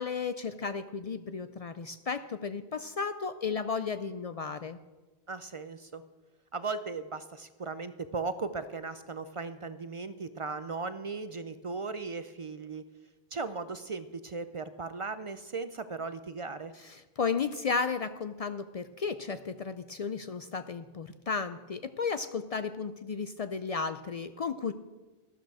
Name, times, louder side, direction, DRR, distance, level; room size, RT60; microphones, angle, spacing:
voice 1, 0.0-4.8 16.8-24.7, left 5 dB, 55° left, 11 dB, 0.4 m, -34 dB
voice 2, 5.3-6.0 6.5-12.8 13.3-16.7, right 4 dB, 50° right, 12 dB, 0.4 m, -37 dB
13.0 x 12.5 x 4.8 m, 1.2 s
omnidirectional pair, 1.1 m